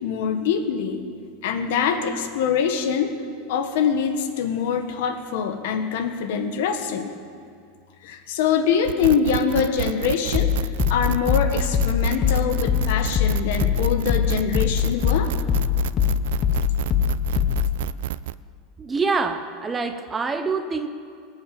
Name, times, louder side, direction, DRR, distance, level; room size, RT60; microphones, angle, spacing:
voice 1, 0.0-1.0 1.4-3.1 3.5-7.1 8.0-10.5 10.9-15.3, left 7 dB, 70° left, 7 dB, 1.4 m, -24 dB
sound 1, 8.8-18.3, right 14 dB, 75° right, 0.3 m, -30 dB
sound 2, 10.3-17.8, left 9 dB, 30° left, 0.8 m, -23 dB
voice 2, 18.8-20.9, right 4 dB, 15° right, 8 dB, 0.6 m, -25 dB
18.5 x 7.2 x 8.6 m, 2.2 s
supercardioid pair, 160°, 0 cm